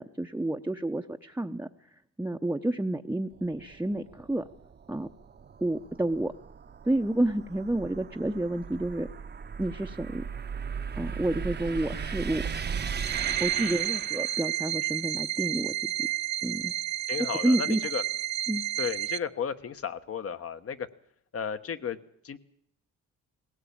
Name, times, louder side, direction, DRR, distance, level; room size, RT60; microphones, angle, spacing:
voice 1, 0.0-1.7 2.2-4.4 4.9-5.1 5.6-6.3 6.8-9.1 9.6-10.2 11.0-12.4 13.4-16.1 16.4-16.7 17.4-17.8 18.5-18.6, right 1 dB, 5° right, 2 dB, 0.8 m, -29 dB
sound 1, 3.3-14.7, right 6 dB, 35° right, 0.9 m, -37 dB
sound 2, 13.0-19.2, right 13 dB, 65° right, 0.8 m, -31 dB
voice 2, 13.5-13.9 17.1-18.0 18.8-20.9 21.3-22.0 22.2-22.4, left 7 dB, 50° left, 11 dB, 1.2 m, -34 dB
19.0 x 17.5 x 8.7 m, 0.68 s
cardioid pair, 90°, 30 cm